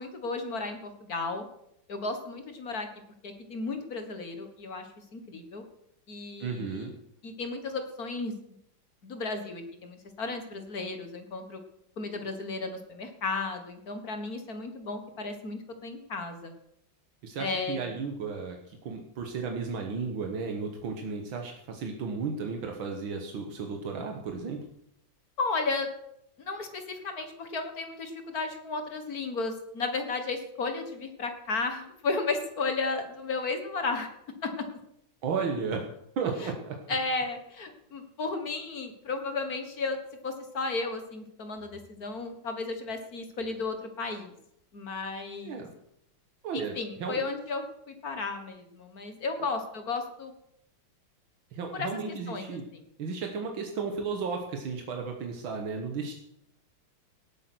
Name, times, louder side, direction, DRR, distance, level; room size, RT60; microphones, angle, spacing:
voice 1, 0.0-1.5 1.9-2.9 3.2-5.7 6.1-6.9 7.2-8.3 9.0-11.6 12.0-16.5 17.4-17.9 25.4-25.9 26.4-34.1 34.4-34.7 36.9-40.0 40.2-44.3 44.7-45.6 46.5-50.3 51.7-51.9 52.3-52.8, left 3 dB, 50° left, 7 dB, 1.9 m, -34 dB
voice 2, 6.4-6.9 17.2-24.6 35.2-35.9 36.2-36.8 45.4-45.7 46.4-47.2 51.5-52.6 53.0-56.1, right 5 dB, 80° right, 3 dB, 2.1 m, -34 dB
18.0 x 8.4 x 6.1 m, 0.75 s
omnidirectional pair, 2.1 m